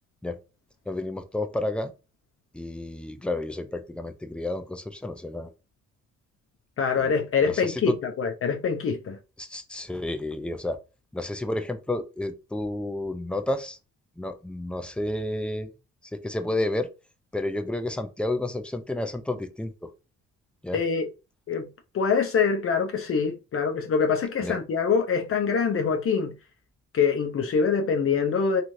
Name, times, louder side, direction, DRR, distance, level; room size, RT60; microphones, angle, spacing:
voice 1, 0.9-1.9 2.5-5.5 7.4-8.0 9.4-10.8 11.1-13.8 14.2-15.7 16.1-16.9 17.3-19.9 20.6-20.8 24.4-24.6, left 1 dB, 5° left, 0.4 m, -31 dB
voice 2, 6.8-9.2 20.7-21.1 21.5-21.7 21.9-26.3 26.9-28.6, left 5 dB, 45° left, 0.6 m, -24 dB
3.1 x 2.5 x 2.6 m
cardioid pair, 90°, 30 cm